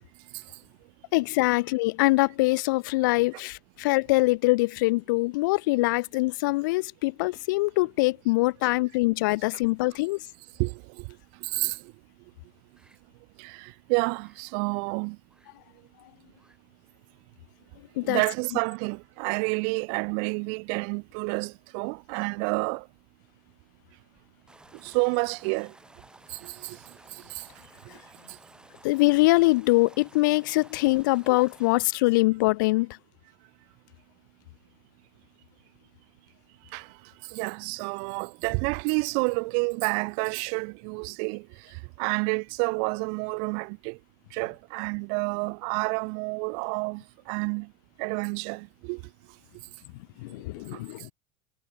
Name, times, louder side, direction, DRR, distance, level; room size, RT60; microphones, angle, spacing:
voice 1, 1.1-10.2 18.0-18.2 28.8-33.0 50.2-51.1, left 22 dB, 80° left, 0.8 m, -23 dB
voice 2, 10.6-11.0 11.4-11.8 13.4-15.2 18.0-22.9 24.8-25.7 26.3-26.8 27.1-27.4 36.7-36.9 37.3-44.0 44.3-47.7 48.0-49.0 50.7-50.8, right 40 dB or more, 70° right, 2.1 m, -29 dB
sound 1, 12.8-13.0 13.4-13.5 13.9-14.4 15.2-15.5 15.8-15.9 16.2-16.6 16.9-17.0 17.6-17.7 20.5-20.8 21.1-21.2 24.1-31.8, right 2 dB, 10° right, 4.3 m, -55 dB
supercardioid pair, 110°, 10 cm